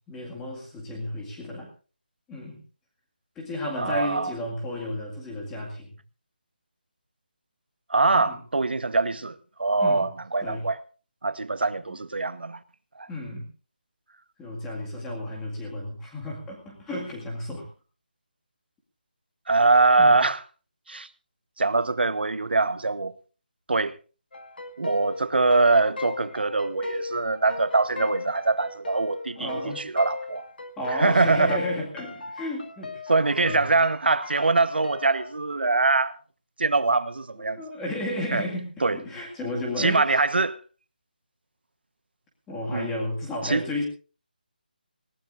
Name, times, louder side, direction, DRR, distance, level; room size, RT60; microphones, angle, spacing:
voice 1, 0.1-1.7 2.3-2.6 3.4-5.9 8.2-8.4 9.8-10.1 10.4-10.7 11.9-12.0 13.1-13.5 14.4-17.7 20.0-20.2 29.4-29.8 30.8-33.0 33.4-33.7 37.4-40.2 42.5-43.8, left 1 dB, 5° left, 2.1 m, -33 dB
voice 2, 3.8-4.3 7.9-10.8 11.2-12.6 13.0-13.1 19.5-20.4 20.9-21.1 21.6-23.1 23.7-24.0 24.8-30.4 31.0-31.6 33.1-36.2 36.6-37.6 38.3-38.4 38.8-39.0 39.8-40.6 42.7-42.9 43.4-43.6, right 3 dB, 80° right, 1.2 m, -23 dB
sound 1, 24.3-35.3, left 3 dB, 70° left, 2.2 m, -37 dB
19.5 x 18.5 x 2.6 m
figure-of-eight pair, 180°, 5 cm